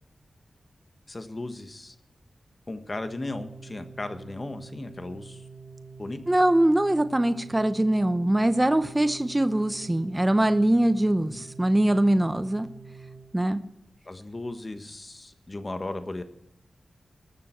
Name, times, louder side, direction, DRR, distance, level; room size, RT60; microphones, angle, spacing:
voice 1, 1.1-1.9 2.7-5.4 6.0-6.2 11.3-11.4 14.0-16.2, left 2 dB, 35° left, 8 dB, 1.4 m, -36 dB
Organ, 3.0-13.9, right 4 dB, 75° right, 1.9 m, -46 dB
voice 2, 6.3-12.7 13.3-13.6, right 1 dB, 15° right, 10 dB, 0.7 m, -22 dB
19.5 x 6.9 x 4.5 m, 0.82 s
wide cardioid pair, 70°, 0 cm